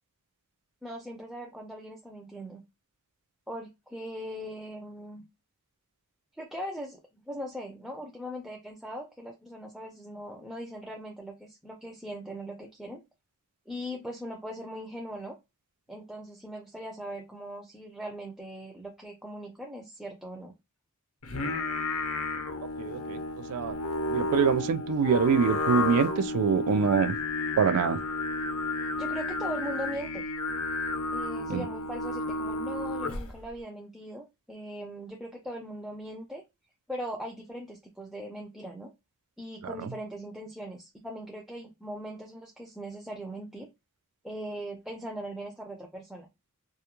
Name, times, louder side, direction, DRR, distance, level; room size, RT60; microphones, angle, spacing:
voice 1, 0.8-2.6 3.5-5.2 6.4-7.0 7.3-13.0 13.7-15.4 15.9-20.5 29.0-30.3 31.1-36.4 36.9-38.9 39.4-43.7 44.2-46.3, equal, ahead, 0.3 m, -40 dB
Singing, 21.2-33.4, left 2 dB, 70° left, 0.5 m, -32 dB
voice 2, 22.8-23.2 23.5-23.7 24.1-27.2 27.6-28.0 31.5-31.6 39.6-39.9, right 6 dB, 85° right, 0.4 m, -25 dB
2.3 x 2.1 x 2.9 m
head